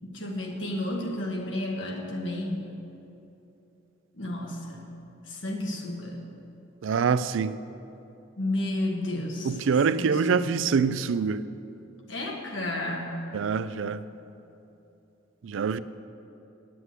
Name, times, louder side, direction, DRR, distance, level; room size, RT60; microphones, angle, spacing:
voice 1, 0.0-2.7 4.1-4.9 5.2-6.2 8.4-9.6 9.9-10.6 12.1-13.3, left 1 dB, 70° left, 1.7 m, -32 dB
voice 2, 6.8-7.6 9.5-11.5 13.3-14.0 15.4-15.8, right 5 dB, 80° right, 0.4 m, -25 dB
9.7 x 7.7 x 8.1 m
head